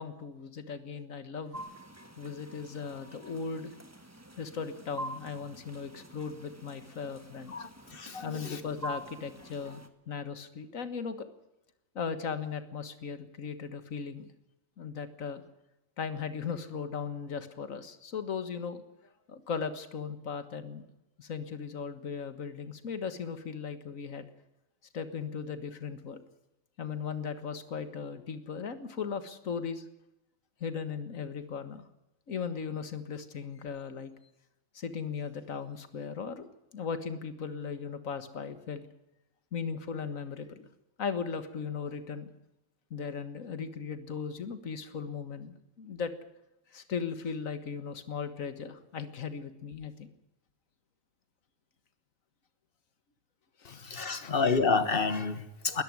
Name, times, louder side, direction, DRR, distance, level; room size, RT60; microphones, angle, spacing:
voice 1, 0.0-1.6 2.2-3.7 4.4-7.5 8.2-11.3 12.0-14.3 14.8-15.4 16.0-18.8 19.3-20.9 21.2-24.3 24.9-26.2 26.8-29.8 30.6-31.9 32.3-34.1 34.7-36.5 36.7-38.9 39.5-40.7 41.0-42.3 42.9-46.1 46.7-50.1 53.6-54.4, left 6 dB, 75° left, 11 dB, 1.9 m, -37 dB
sound 1, 1.5-9.9, right 1 dB, 10° right, 1.5 m, -46 dB
voice 2, 7.5-8.6 53.6-55.8, left 4 dB, 45° left, 11 dB, 1.7 m, -29 dB
21.0 x 13.5 x 9.5 m, 0.91 s
omnidirectional pair, 1.4 m